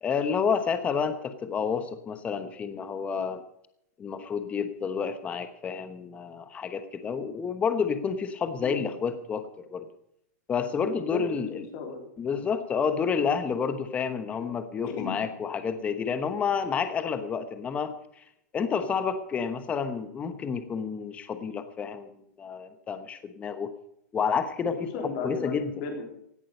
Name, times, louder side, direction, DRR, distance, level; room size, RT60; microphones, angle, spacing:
voice 1, 0.0-3.4 4.0-9.9 10.5-11.6 12.2-18.2 18.5-23.7 24.1-24.9 25.2-25.7, left 6 dB, 15° left, 10 dB, 1.1 m, -30 dB
voice 2, 10.9-11.2 11.5-12.1 14.4-14.6 14.8-15.2 24.6-26.0, left 5 dB, 40° left, 3 dB, 3.7 m, -35 dB
17.0 x 11.0 x 5.4 m, 0.75 s
supercardioid pair, 165°, 10 cm